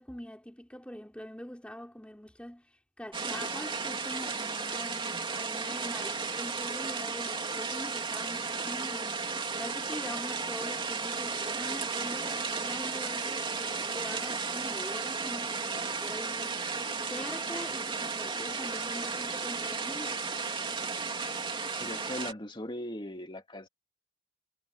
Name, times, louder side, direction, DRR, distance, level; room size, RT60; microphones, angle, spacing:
voice 1, 0.0-9.2 9.6-16.6 17.1-20.2, equal, 5° left, 4.4 m, -43 dB
sound 1, 3.1-22.3, right 4 dB, 25° right, 3.0 m, -34 dB
voice 2, 21.8-23.7, left 1 dB, 25° left, 2.0 m, -39 dB
head